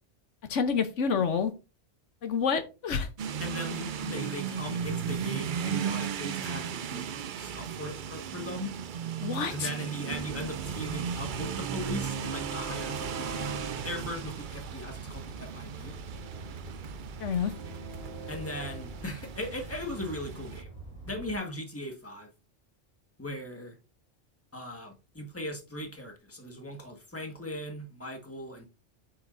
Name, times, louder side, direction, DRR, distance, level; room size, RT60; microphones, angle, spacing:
voice 1, 0.5-1.5 2.2-3.1 9.2-9.7 17.2-17.5, left 6 dB, 75° left, 1.2 m, -28 dB
sound 1, 3.2-20.6, right 8 dB, 60° right, 0.5 m, -36 dB
voice 2, 3.4-8.7 9.5-13.5 13.8-16.0 18.3-20.7 21.1-22.3 23.2-23.7 24.5-28.7, left 1 dB, 10° left, 1.5 m, -38 dB
Train, 10.1-21.3, right 3 dB, 35° right, 3.8 m, -42 dB
8.9 x 7.3 x 2.6 m
omnidirectional pair, 1.2 m